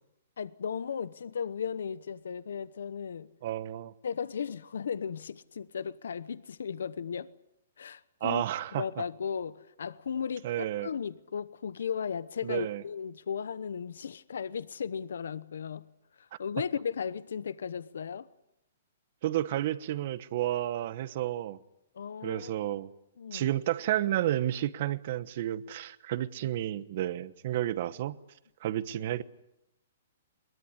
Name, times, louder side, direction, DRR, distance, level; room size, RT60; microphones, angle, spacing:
voice 1, 0.4-3.3 4.0-7.3 7.8-8.4 8.8-15.9 16.2-18.3 21.9-22.7 23.2-23.5, left 7 dB, 85° left, 0.9 m, -36 dB
voice 2, 3.4-3.9 8.2-8.8 10.4-10.9 12.4-12.8 19.2-21.6 22.2-22.9 23.3-28.2 28.6-29.2, right 13 dB, 40° right, 1.1 m, -31 dB
22.0 x 21.5 x 9.8 m
hypercardioid pair, 170°, 0 cm